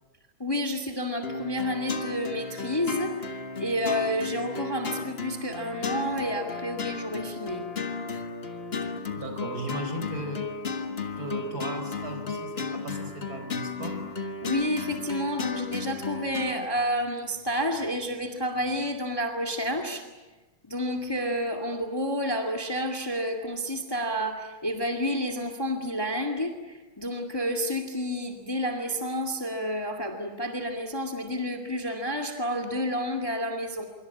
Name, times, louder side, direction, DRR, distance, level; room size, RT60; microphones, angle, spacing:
voice 1, 0.4-7.7 14.4-20.1 20.6-33.8, equal, 10° left, 4 dB, 2.1 m, -30 dB
sound 1, 1.2-16.7, left 4 dB, 30° left, 1.6 m, -34 dB
voice 2, 9.2-10.5 11.2-14.0, right 1 dB, 45° right, 5 dB, 4.8 m, -36 dB
25.5 x 24.0 x 8.7 m, 1.2 s
omnidirectional pair, 2.3 m